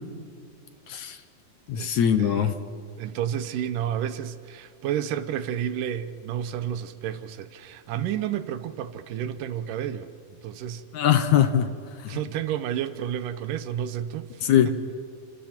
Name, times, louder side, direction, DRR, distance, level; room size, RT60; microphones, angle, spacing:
voice 1, 0.9-1.2 1.7-2.5 10.9-11.7 12.0-12.2 14.4-14.8, left 9 dB, 70° left, 2.1 m, -21 dB
voice 2, 1.7-2.5 3.0-10.1 10.4-10.8 12.1-14.7, right 10 dB, 75° right, 2.4 m, -31 dB
30.0 x 27.0 x 4.4 m
omnidirectional pair, 3.9 m